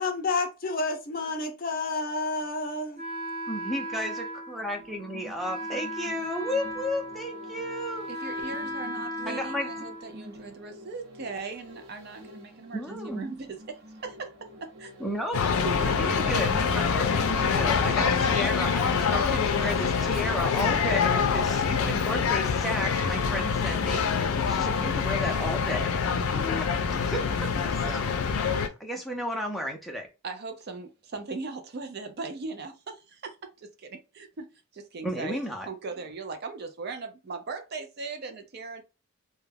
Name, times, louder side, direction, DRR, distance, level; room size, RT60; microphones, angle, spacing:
voice 1, 0.0-3.0, left 3 dB, 45° left, 0.6 m, -30 dB
Wind instrument woodwind instrument, 3.0-10.7, equal, 35° right, 0.8 m, -37 dB
voice 2, 3.5-8.1 9.3-9.7 12.7-13.3 15.0-15.4 15.7-26.7 27.0-27.5 27.8-28.1 28.6-30.1 35.0-35.7, left 1 dB, ahead, 0.5 m, -33 dB
sound 1, 4.8-21.0 21.4-21.5, equal, 80° right, 0.9 m, -48 dB
voice 3, 8.1-14.3 14.6-14.9 15.6-16.3 17.9-18.2 30.2-34.5 34.7-35.4 35.7-38.8, right 4 dB, 50° right, 0.4 m, -39 dB
sound 2, 15.3-28.7, left 6 dB, 90° left, 0.4 m, -25 dB
2.2 x 2.1 x 3.3 m
head